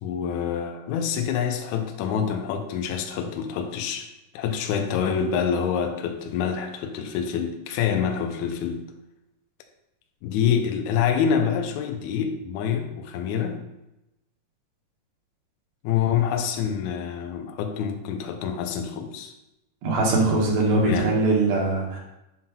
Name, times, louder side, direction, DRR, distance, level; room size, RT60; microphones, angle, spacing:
voice 1, 0.0-4.1 4.3-8.8 10.2-13.6 15.8-19.3 20.8-21.1, left 7 dB, 80° left, 5 dB, 1.8 m, -26 dB
voice 2, 19.8-22.0, right 2 dB, 85° right, -1 dB, 2.9 m, -21 dB
7.4 x 5.6 x 2.2 m, 0.91 s
omnidirectional pair, 3.9 m